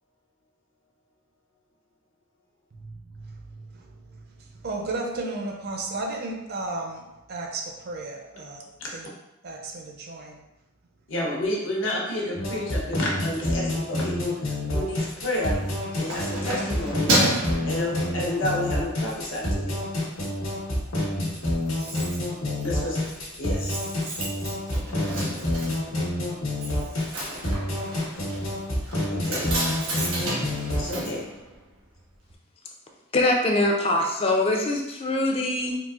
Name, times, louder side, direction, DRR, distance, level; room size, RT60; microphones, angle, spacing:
voice 1, 2.8-8.6 8.9-9.1 9.4-10.4 22.5-22.9, right 2 dB, 50° right, 2 dB, 0.5 m, -34 dB
voice 2, 11.1-15.6 16.0-17.1 17.6-19.8 22.6-23.0 23.4-23.8 29.1-29.5 30.7-31.3, left 1 dB, 70° left, -3 dB, 0.8 m, -30 dB
sound 1, 12.3-30.9, left 1 dB, 90° left, 1.2 m, -28 dB
Keys jangling, 15.5-18.6 19.0-19.3 19.6-20.3 20.6-20.7 20.9-21.0 21.2-32.0 32.3-32.4, right 1 dB, 90° right, 1.1 m, -31 dB
voice 3, 33.1-35.8, left 1 dB, 30° left, 1 dB, 0.4 m, -23 dB
3.8 x 2.4 x 2.3 m, 0.93 s
head